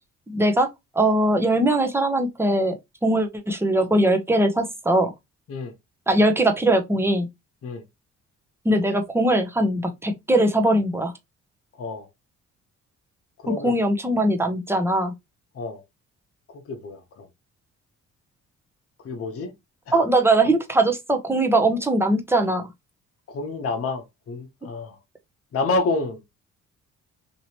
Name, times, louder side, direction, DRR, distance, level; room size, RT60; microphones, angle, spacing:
voice 1, 0.3-0.7 1.0-2.8 3.0-5.1 6.1-7.3 8.6-11.1 13.6-15.1 19.9-22.6, right 1 dB, 10° right, 0.7 m, -21 dB
voice 2, 13.4-13.8 15.5-15.8 16.5-17.3 19.0-19.5 23.3-25.0 25.5-26.2, left 3 dB, 50° left, 0.9 m, -28 dB
3.0 x 2.8 x 2.9 m
cardioid pair, 90°, 30 cm